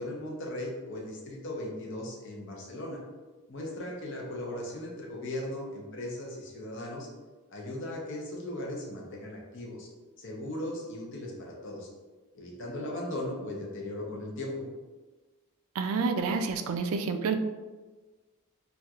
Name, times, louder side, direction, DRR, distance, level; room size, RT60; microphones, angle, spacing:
voice 1, 0.0-3.0 3.5-7.1 7.5-9.9 10.2-11.9 12.3-14.7, left 1 dB, 55° left, -1 dB, 0.6 m, -37 dB
voice 2, 15.8-17.4, right 4 dB, 65° right, 7 dB, 0.3 m, -29 dB
4.3 x 2.3 x 2.3 m, 1.3 s
head